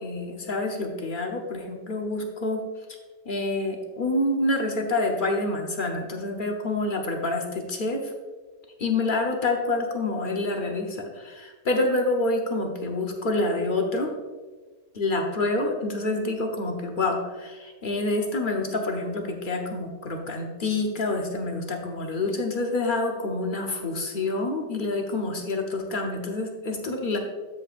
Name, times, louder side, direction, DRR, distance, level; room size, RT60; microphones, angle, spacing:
voice 1, 0.0-2.6 3.2-8.1 8.8-14.1 15.0-27.2, left 2 dB, 45° left, 2 dB, 0.7 m, -27 dB
13.0 x 5.4 x 2.5 m, 1.3 s
omnidirectional pair, 1.8 m